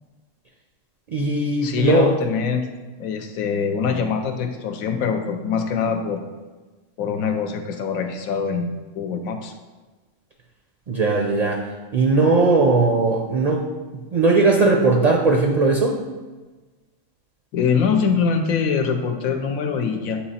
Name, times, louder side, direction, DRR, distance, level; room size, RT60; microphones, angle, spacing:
voice 1, 1.1-2.1 10.9-11.6 11.9-13.6 14.1-16.0, right 3 dB, 55° right, 0 dB, 0.4 m, -18 dB
voice 2, 1.6-2.7 3.0-6.2 7.0-9.5 17.5-20.2, left 6 dB, 90° left, 5 dB, 1.1 m, -23 dB
7.9 x 2.9 x 4.2 m, 1.3 s
omnidirectional pair, 1.4 m